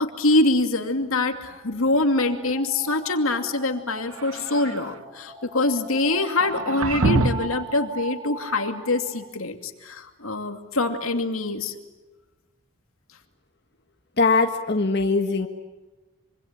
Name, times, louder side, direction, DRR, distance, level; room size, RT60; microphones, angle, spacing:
voice 1, 0.0-11.7, left 2 dB, 85° left, 6 dB, 2.6 m, -24 dB
sound 1, 1.5-9.3, right 3 dB, 20° right, 3.1 m, -39 dB
sound 2, 4.1-5.0 6.4-7.6, right 2 dB, 85° right, 0.9 m, -26 dB
voice 2, 14.2-15.5, left 3 dB, 50° left, 4 dB, 1.7 m, -21 dB
25.5 x 25.5 x 8.8 m, 1.2 s
head